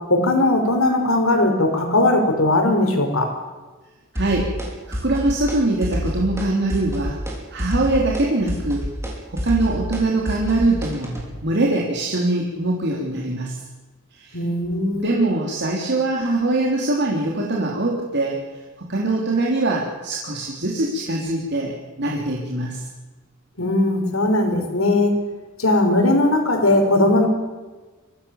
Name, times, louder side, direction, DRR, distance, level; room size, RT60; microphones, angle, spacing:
voice 1, 0.1-3.3 14.3-15.1 23.6-25.1 25.6-27.3, left 2 dB, 75° left, 4 dB, 5.2 m, -18 dB
voice 2, 4.1-4.5 4.9-7.2 7.5-8.9 9.3-11.1 11.4-13.6 14.1-14.4 14.9-18.4 18.9-22.8, right 2 dB, 55° right, -2 dB, 3.5 m, -22 dB
sound 1, 4.2-4.7 4.9-5.6 5.8-6.5 6.7-7.3 7.6-11.3, equal, 15° right, 5.5 m, -27 dB
24.5 x 18.0 x 7.3 m, 1.3 s
head